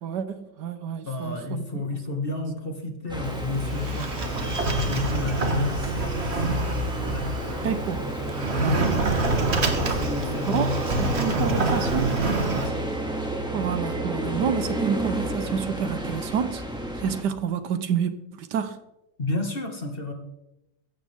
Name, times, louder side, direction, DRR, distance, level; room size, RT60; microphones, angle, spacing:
voice 1, 0.0-1.6 7.6-8.0 8.6-8.8 10.5-12.1 13.5-16.6 17.0-18.8, right 7 dB, 75° right, 1.5 m, -28 dB
voice 2, 1.1-4.1 4.4-7.7 8.5-8.9 9.8-12.9 19.2-20.1, left 2 dB, 30° left, 2.1 m, -31 dB
sound 1, 3.1-17.2, equal, 5° right, 2.2 m, -30 dB
Sliding door, 3.2-12.7, right 3 dB, 40° right, 1.6 m, -28 dB
15.5 x 13.5 x 3.6 m
omnidirectional pair, 1.8 m